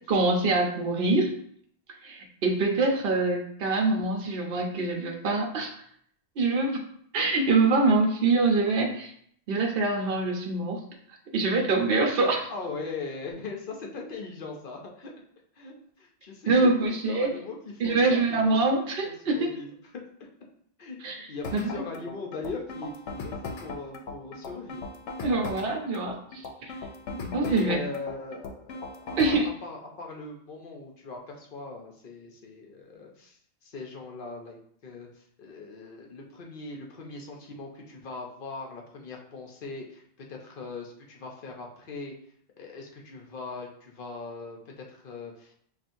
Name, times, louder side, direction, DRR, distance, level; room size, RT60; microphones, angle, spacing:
voice 1, 0.1-1.3 2.0-5.8 6.4-6.8 7.1-9.1 9.5-10.8 11.3-12.5 16.5-17.3 17.8-19.5 21.0-21.8 25.2-26.7 27.1-27.8 29.2-29.5, right 3 dB, 60° right, 1 dB, 0.9 m, -25 dB
voice 2, 12.5-15.1 15.6-17.6 17.8-18.6 19.0-19.7 19.9-20.3 20.8-21.0 21.3-24.8 27.4-42.1 42.6-45.5, left 3 dB, 55° left, 0 dB, 0.7 m, -40 dB
sound 1, 21.4-29.5, left 3 dB, 90° left, 0.9 m, -38 dB
5.7 x 2.4 x 2.6 m, 0.65 s
omnidirectional pair, 1.2 m